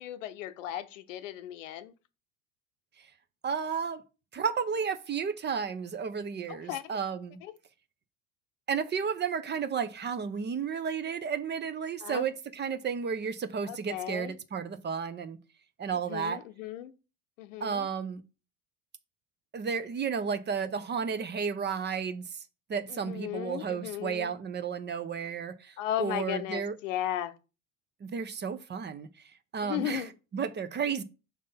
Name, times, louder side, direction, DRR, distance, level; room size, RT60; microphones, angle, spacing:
voice 1, 0.0-1.9 6.5-7.0 7.4-7.5 12.0-12.3 13.7-14.3 16.1-16.9 17.4-17.9 22.9-24.3 25.8-27.4 29.6-30.1, left 12 dB, 75° left, 0.8 m, -36 dB
voice 2, 3.4-4.0 4.3-7.4 8.7-15.4 15.8-16.4 17.6-18.2 19.5-22.4 22.7-26.8 28.0-29.1 29.5-31.0, right 6 dB, 25° right, 0.7 m, -32 dB
5.6 x 3.7 x 5.5 m
hypercardioid pair, 75°, 38 cm